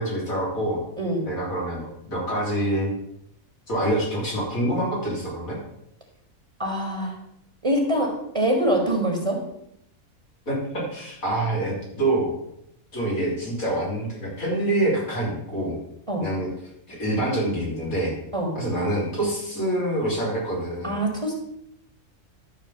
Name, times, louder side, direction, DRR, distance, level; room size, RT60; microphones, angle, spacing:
voice 1, 0.0-0.8 1.2-2.9 3.7-5.6 10.5-12.3 12.9-15.8 16.2-16.5 16.9-18.2 18.5-21.0, right 1 dB, 85° left, -5 dB, 4.0 m, -26 dB
voice 2, 6.6-7.2 7.6-9.4 16.1-16.3 18.3-18.5 20.8-21.3, right 1 dB, 25° right, 1 dB, 1.8 m, -24 dB
12.5 x 4.3 x 7.2 m, 0.78 s
omnidirectional pair, 1.4 m